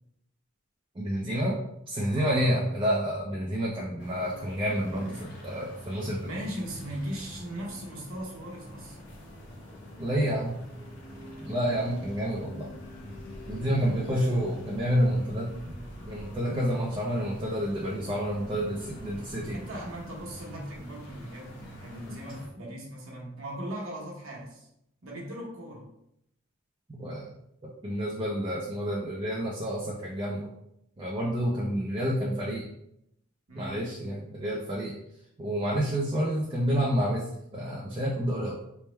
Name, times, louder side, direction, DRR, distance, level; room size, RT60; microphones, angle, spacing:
voice 1, 1.0-1.6 1.9-6.3 10.0-10.6 11.4-12.7 13.5-15.5 16.1-19.6 27.0-27.3 27.6-30.5 31.0-32.7 33.5-34.9 35.4-38.6, equal, 25° right, -4 dB, 0.5 m, -29 dB
voice 2, 2.1-2.6 6.2-9.0 19.5-24.7 25.0-25.8 33.5-33.9, right 1 dB, 75° right, -2 dB, 1.1 m, -39 dB
sound 1, 4.0-22.5, left 1 dB, 55° left, 0.8 m, -44 dB
3.4 x 2.1 x 4.3 m, 0.78 s
head